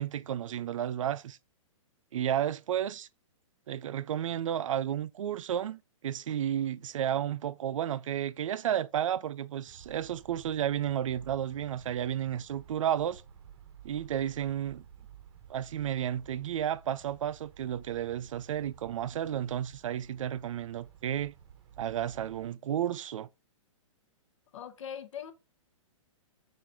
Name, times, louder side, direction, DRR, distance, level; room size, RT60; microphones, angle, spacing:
voice 1, 0.0-1.4 2.1-3.1 3.7-13.2 13.8-14.8 15.5-21.3 21.8-23.3, right 10 dB, 75° right, 0.4 m, -32 dB
sound 1, 9.6-22.5, right 8 dB, 50° right, 0.8 m, -53 dB
voice 2, 24.5-25.3, left 8 dB, 65° left, 0.7 m, -41 dB
5.8 x 2.6 x 3.3 m
hypercardioid pair, 135°, 17 cm